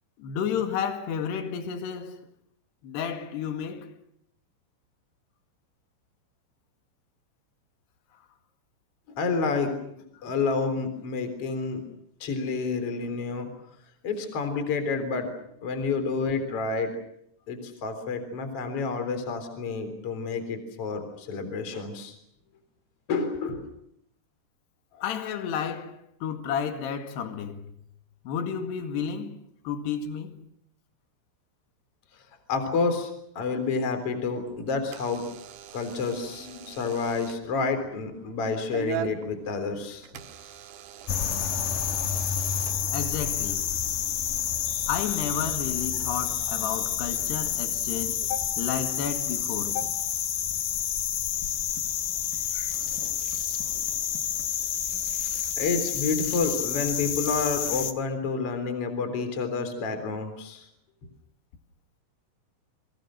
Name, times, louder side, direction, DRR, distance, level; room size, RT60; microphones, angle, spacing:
voice 1, 0.2-2.2 2.8-3.9 25.0-27.7 28.3-29.4 29.7-30.5 42.9-43.6 44.9-49.9, left 7 dB, 60° left, 3.8 m, -32 dB
voice 2, 9.1-9.7 10.2-11.8 12.2-13.5 14.0-15.3 15.6-16.9 17.5-22.1 23.1-23.7 32.5-35.2 35.7-40.1 55.6-60.7, left 4 dB, 30° left, 3.9 m, -29 dB
Door / Alarm, 34.2-43.4, right 10 dB, 70° right, 3.6 m, -42 dB
sound 1, 41.1-57.9, left 9 dB, 80° left, 1.8 m, -29 dB
30.0 x 24.0 x 6.4 m
omnidirectional pair, 6.0 m